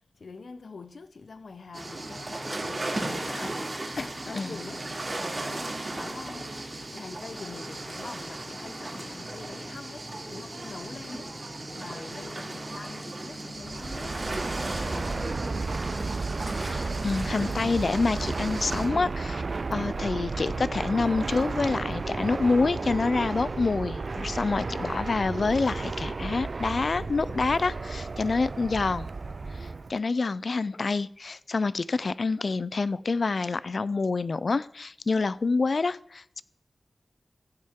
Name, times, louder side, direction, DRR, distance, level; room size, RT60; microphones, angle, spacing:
voice 1, 0.2-3.7 4.0-4.8 5.2-6.5 6.9-11.3 11.7-16.2, left 4 dB, 80° left, 0.8 m, -44 dB
sound 1, 1.7-18.9, right 2 dB, 45° right, 2.5 m, -36 dB
Fixed-wing aircraft airplane, 13.6-30.0, right 3 dB, 65° right, 0.3 m, -33 dB
voice 2, 16.6-19.4 19.7-29.1 29.5-36.4, left 4 dB, 65° left, 0.4 m, -27 dB
15.0 x 7.5 x 3.6 m
wide cardioid pair, 70°, 0 cm